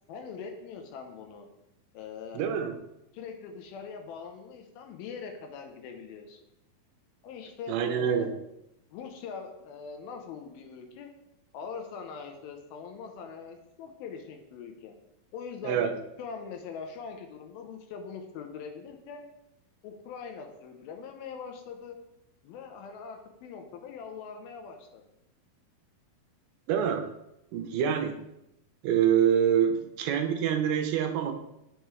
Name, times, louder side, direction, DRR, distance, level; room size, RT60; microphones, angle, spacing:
voice 1, 0.1-1.5 1.9-2.5 3.1-6.4 7.2-8.4 8.9-11.1 11.5-14.9 15.3-15.9 16.2-19.3 19.8-22.0 22.4-25.0, left 6 dB, 85° left, 4 dB, 2.6 m, -42 dB
voice 2, 2.3-2.7 7.7-8.3 15.6-15.9 26.7-27.1 27.5-28.2 28.8-31.3, right 8 dB, 80° right, 5 dB, 2.4 m, -26 dB
8.1 x 6.0 x 3.1 m, 0.85 s
omnidirectional pair, 4.3 m